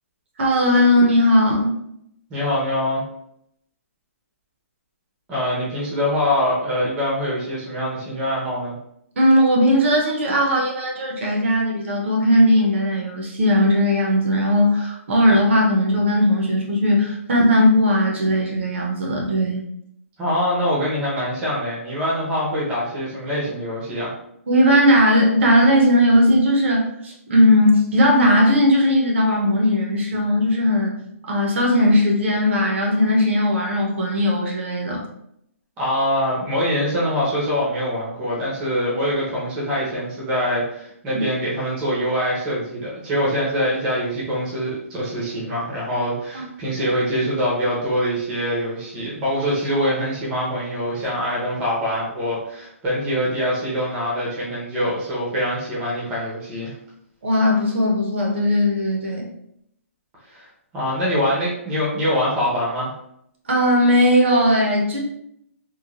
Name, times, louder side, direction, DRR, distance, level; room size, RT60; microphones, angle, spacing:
voice 1, 0.4-1.8 9.2-19.7 24.5-30.9 31.2-35.0 41.1-41.2 46.3-46.4 57.2-59.3 63.4-65.0, equal, 55° right, -1 dB, 0.7 m, -18 dB
voice 2, 2.3-3.0 5.3-8.8 20.2-24.1 35.8-56.7 60.3-60.5 60.7-62.9, equal, 15° right, -7 dB, 0.7 m, -24 dB
3.1 x 2.2 x 2.4 m, 0.73 s
hypercardioid pair, 170°, 8 cm